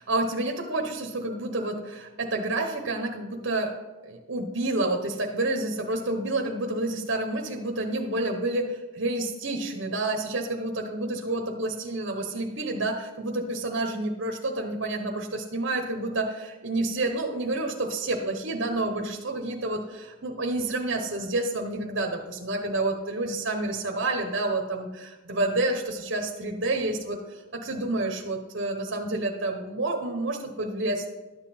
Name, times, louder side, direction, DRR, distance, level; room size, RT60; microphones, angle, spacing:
voice 1, 0.0-3.7 4.0-31.1, right 2 dB, 55° right, 3 dB, 0.9 m, -29 dB
11.5 x 7.3 x 4.3 m, 1.2 s
head